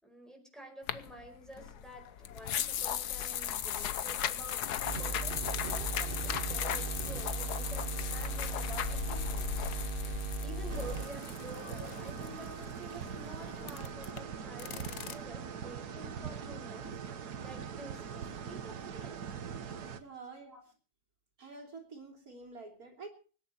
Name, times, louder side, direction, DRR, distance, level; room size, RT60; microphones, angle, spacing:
voice 1, 0.0-9.5 9.8-17.0 17.4-19.3 20.5-20.6, right 1 dB, ahead, 2 dB, 4.9 m, -50 dB
sound 1, 0.9-15.1, left 10 dB, 90° left, 1.4 m, -37 dB
sound 2, 4.8-11.1, right 4 dB, 40° right, 1.0 m, -37 dB
sound 3, 10.7-20.0, right 7 dB, 85° right, 1.7 m, -42 dB
voice 2, 19.9-20.6 21.4-23.1, right 4 dB, 70° right, 2 dB, 3.5 m, -48 dB
25.0 x 10.0 x 4.4 m, 0.40 s
omnidirectional pair, 1.6 m